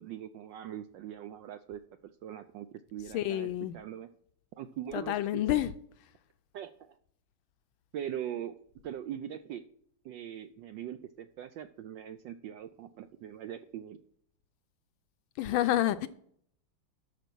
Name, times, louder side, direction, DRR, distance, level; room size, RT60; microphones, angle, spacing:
voice 1, 0.0-3.5 3.7-4.1 4.6-5.6 6.5-7.0 7.9-8.5 8.8-9.6 10.0-14.0, right 10 dB, 75° right, 1.1 m, -41 dB
voice 2, 3.1-3.8 4.9-5.7 15.4-16.1, left 13 dB, 75° left, 1.3 m, -28 dB
12.5 x 5.0 x 6.0 m
omnidirectional pair, 2.4 m